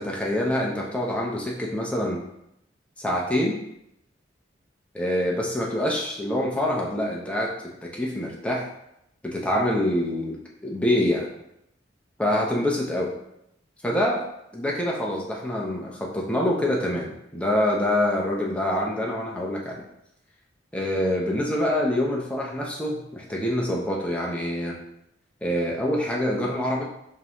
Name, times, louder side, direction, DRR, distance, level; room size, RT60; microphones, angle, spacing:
voice 1, 0.0-2.2 3.0-3.6 4.9-7.5 7.8-8.7 9.2-11.3 12.2-13.1 13.8-14.2 14.5-19.9 20.7-24.8 25.4-26.8, left 1 dB, 5° left, -3 dB, 0.7 m, -25 dB
5.1 x 2.7 x 2.9 m, 0.80 s
head